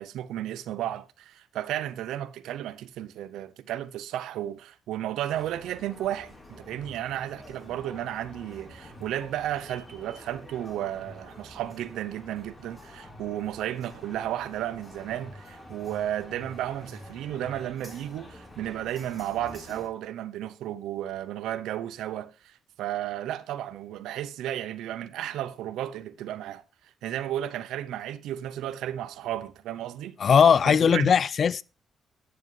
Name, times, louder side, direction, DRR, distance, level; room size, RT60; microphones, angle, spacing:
voice 1, 0.0-26.6 27.0-30.2 30.7-31.1, right 12 dB, 85° right, 0.5 m, -33 dB
sound 1, 5.3-19.9, left 1 dB, 25° left, 2.7 m, -47 dB
voice 2, 30.2-31.6, left 7 dB, 50° left, 0.3 m, -19 dB
9.4 x 7.6 x 3.1 m
cardioid pair, 90°, 0 cm